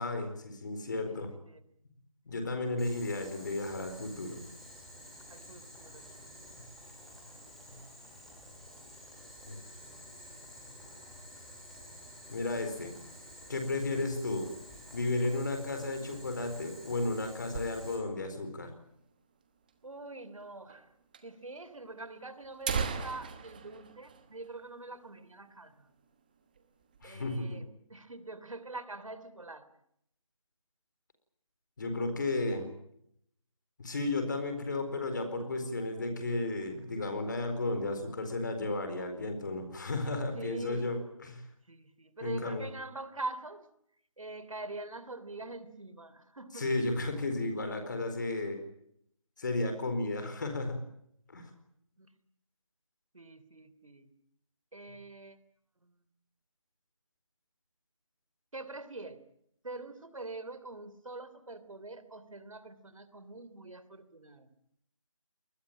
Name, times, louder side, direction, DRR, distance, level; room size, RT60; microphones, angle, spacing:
voice 1, 0.0-1.3 2.2-4.4 6.6-6.7 7.7-7.8 9.5-9.6 12.3-12.9 13.5-14.5 14.9-18.7 27.0-27.6 31.8-32.7 33.8-41.4 42.2-42.7 46.5-48.6 49.4-50.8 51.3-51.5, left 2 dB, 35° left, 7 dB, 4.4 m, -33 dB
voice 2, 1.1-1.6 5.3-6.3 13.9-14.1 19.8-20.9 21.2-25.7 27.0-27.6 27.9-29.7 40.3-40.9 41.7-43.7 44.2-46.7 52.0-52.1 53.1-54.1 54.7-55.4 55.8-56.0 58.5-59.2 59.6-64.5, right 2 dB, 75° right, 13 dB, 3.0 m, -44 dB
Boiling, 2.8-18.0, equal, ahead, 2.6 m, -51 dB
sound 1, 16.7-18.3 18.6-18.7 18.9-19.0 19.7-19.8 20.7-20.8 21.1-21.2 22.0-22.1 22.4-25.0 25.3-25.5 25.9-26.1 26.6-27.1, right 6 dB, 15° right, 1.2 m, -38 dB
24.0 x 20.5 x 8.8 m, 0.72 s
figure-of-eight pair, 170°, 17 cm